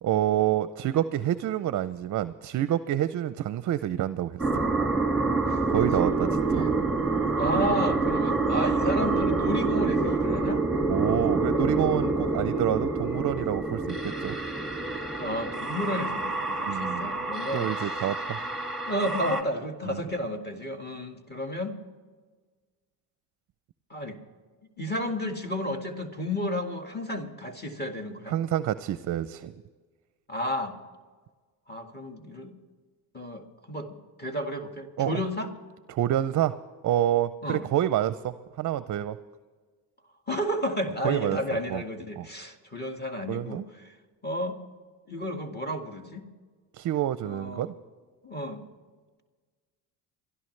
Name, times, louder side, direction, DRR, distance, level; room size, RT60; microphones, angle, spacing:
voice 1, 0.0-4.4 5.7-6.3 6.5-6.7 10.9-14.4 16.6-17.1 17.5-18.4 19.9-20.0 28.3-29.5 35.0-35.1 35.9-36.5 36.8-39.2 41.0-41.4 41.7-41.8 42.2-42.3 43.3-43.6 46.7-47.7, right 12 dB, 45° right, 15 dB, 0.5 m, -27 dB
sound 1, 4.4-19.4, right 3 dB, ahead, 2.0 m, -27 dB
voice 2, 6.0-6.8 7.3-10.6 15.2-18.0 18.9-21.8 23.9-24.2 24.8-28.4 30.3-30.8 31.7-32.5 33.1-35.5 37.4-37.6 40.3-44.0 44.2-44.6 45.1-46.2 47.2-47.7 48.2-48.7, equal, 25° left, 4 dB, 1.9 m, -32 dB
27.5 x 11.5 x 3.2 m, 1.4 s
supercardioid pair, 85°, 41 cm